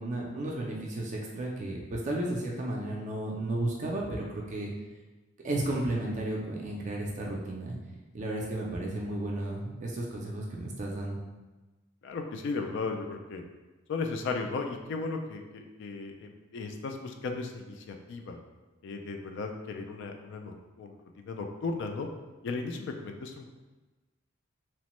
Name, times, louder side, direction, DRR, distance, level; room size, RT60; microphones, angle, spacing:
voice 1, 0.0-4.7 5.4-7.8 8.1-11.2, right 1 dB, 35° right, -2 dB, 0.4 m, -33 dB
voice 2, 12.0-13.4 13.9-18.4 18.8-22.1 22.4-23.5, left 4 dB, 60° left, 4 dB, 0.3 m, -36 dB
2.9 x 2.1 x 2.9 m, 1.2 s
head